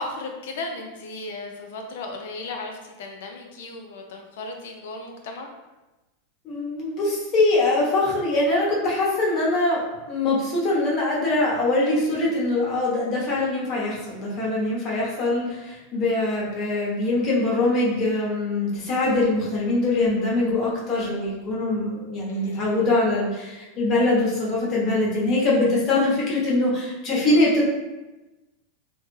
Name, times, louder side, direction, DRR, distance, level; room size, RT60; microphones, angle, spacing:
voice 1, 0.0-5.5 22.3-22.8, left 3 dB, 75° left, 2 dB, 0.6 m, -35 dB
voice 2, 6.4-9.8 10.1-27.6, left 2 dB, 35° left, -5 dB, 1.1 m, -23 dB
3.2 x 2.2 x 3.2 m, 1.1 s
supercardioid pair, 135°, 0 cm